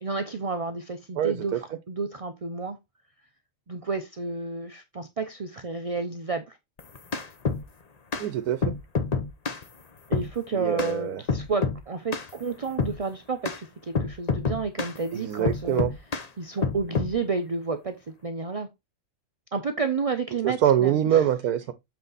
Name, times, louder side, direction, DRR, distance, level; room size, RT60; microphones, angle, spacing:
voice 1, 0.0-2.8 3.7-6.6 10.1-15.8 16.4-18.0 18.2-18.7 19.5-21.2, right 4 dB, 40° right, 0.5 m, -31 dB
voice 2, 1.2-1.6 8.2-8.7 10.5-11.2 15.1-15.9 20.4-21.7, right 10 dB, 85° right, 1.2 m, -24 dB
sound 1, 6.8-7.6 8.1-8.3 8.6-9.6 10.1-10.3 10.8-10.9 11.3-11.8 12.1-12.3 12.8-13.0 13.4-13.6 13.9-15.0 15.4-16.3 16.6-17.1, left 5 dB, 35° left, 0.8 m, -27 dB
8.0 x 4.5 x 4.0 m
omnidirectional pair, 1.6 m